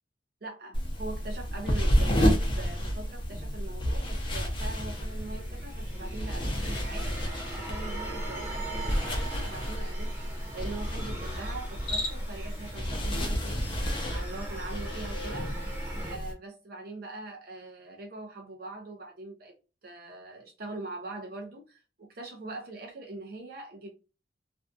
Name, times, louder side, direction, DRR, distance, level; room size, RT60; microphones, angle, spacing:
voice 1, 0.4-13.7 14.1-15.5 16.1-19.5 19.8-23.9, right 2 dB, 55° right, 0.6 m, -42 dB
sound 1, 0.7-16.3, equal, 30° left, 0.6 m, -31 dB
sound 2, 4.9-16.2, right 2 dB, 15° right, 0.9 m, -42 dB
Cricket, 11.7-12.5, left 2 dB, 65° left, 0.9 m, -34 dB
2.6 x 2.3 x 2.4 m
head